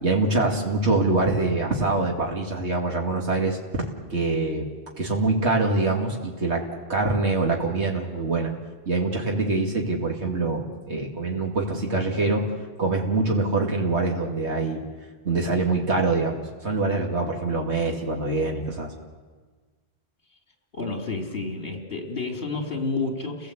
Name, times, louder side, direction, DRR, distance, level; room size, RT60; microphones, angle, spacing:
voice 1, 0.0-4.7 5.0-6.6 6.9-8.5 8.9-12.5 12.8-14.8 15.2-18.9, right 3 dB, 80° right, 0 dB, 2.6 m, -24 dB
voice 2, 20.7-23.5, left 3 dB, 60° left, 3 dB, 3.2 m, -30 dB
29.5 x 17.0 x 8.1 m, 1.4 s
omnidirectional pair, 1.1 m